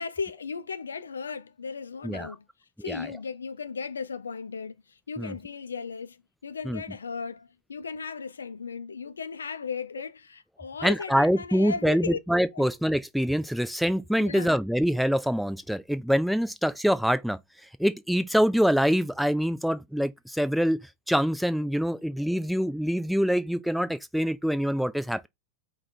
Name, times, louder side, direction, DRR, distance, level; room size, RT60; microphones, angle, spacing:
voice 1, 0.0-2.4 2.8-12.2 12.5-12.7 14.2-14.5, left 5 dB, 70° left, 0.4 m, -36 dB
voice 2, 2.0-2.3 2.9-3.1 5.2-5.3 6.7-6.8 10.8-17.4 17.8-20.8 21.1-25.3, equal, ahead, 0.4 m, -25 dB
4.9 x 2.2 x 4.0 m
figure-of-eight pair, 90°, 0 cm